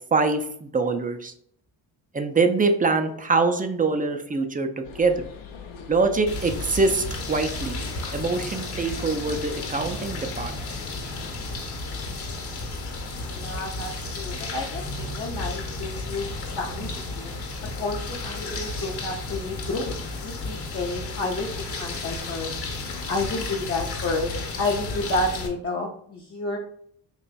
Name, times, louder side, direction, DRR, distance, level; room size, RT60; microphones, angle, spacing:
voice 1, 0.1-1.3 2.1-5.3 5.9-7.8 8.1-10.6, right 3 dB, 20° right, 6 dB, 0.4 m, -24 dB
sound 1, 4.8-11.3, left 5 dB, 75° left, 0.7 m, -42 dB
sound 2, 6.3-25.5, left 3 dB, 55° left, 1.0 m, -33 dB
voice 2, 13.3-17.4 17.7-21.5 21.8-22.6 23.1-26.6, left 2 dB, 30° left, 0 dB, 0.6 m, -30 dB
2.9 x 2.3 x 4.0 m, 0.64 s
supercardioid pair, 55°, 48 cm